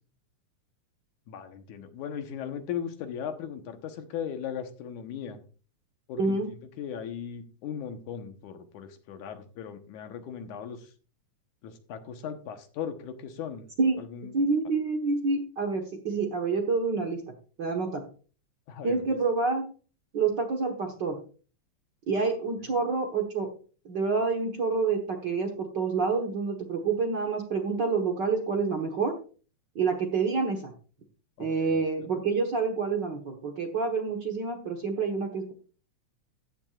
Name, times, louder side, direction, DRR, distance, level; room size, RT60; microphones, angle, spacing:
voice 1, 1.3-5.4 6.1-10.9 11.6-13.7 14.0-14.4 18.7-19.2 31.4-31.8, left 8 dB, 75° left, 7 dB, 2.6 m, -38 dB
voice 2, 14.3-17.2 17.6-18.0 18.8-19.6 20.1-21.2 22.1-23.5 23.8-29.1 29.7-30.7 31.4-35.5, right 4 dB, 50° right, 3 dB, 1.4 m, -28 dB
14.5 x 10.5 x 2.4 m, 0.39 s
omnidirectional pair, 3.5 m